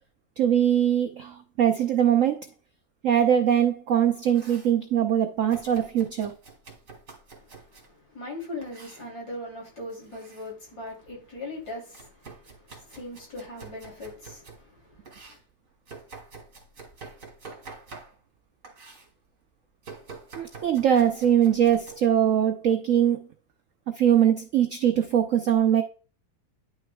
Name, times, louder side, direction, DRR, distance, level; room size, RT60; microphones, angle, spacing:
voice 1, 0.4-2.4 3.0-6.3 20.4-23.3 23.9-25.8, right 9 dB, 70° right, 0.7 m, -22 dB
Domestic sounds home sounds, 4.0-4.8 5.5-7.9 8.6-9.1 9.9-10.5 10.9-14.6 15.0-18.4 18.6-19.1 19.8-21.9, right 4 dB, 45° right, 2.5 m, -47 dB
voice 2, 7.4-15.4, left 2 dB, 55° left, 3.7 m, -40 dB
10.0 x 6.4 x 2.3 m
omnidirectional pair, 2.1 m